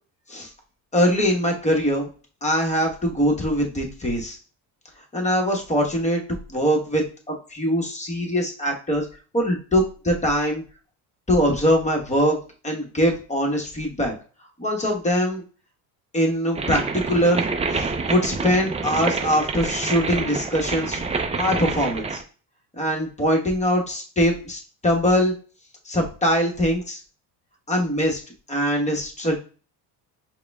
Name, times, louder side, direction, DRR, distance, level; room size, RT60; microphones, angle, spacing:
voice 1, 0.9-2.1 2.4-4.4 5.1-6.2 6.5-9.1 9.3-10.6 11.3-12.4 12.6-14.1 14.6-15.4 16.1-17.5 17.7-21.0 21.3-22.2 22.8-25.3 25.8-27.0 27.7-28.2 28.5-29.4, equal, 15° left, 1 dB, 1.2 m, -22 dB
sound 1, 16.5-22.2, right 4 dB, 15° right, 0.4 m, -27 dB
4.8 x 2.3 x 3.4 m, 0.37 s
cardioid pair, 110°, 46 cm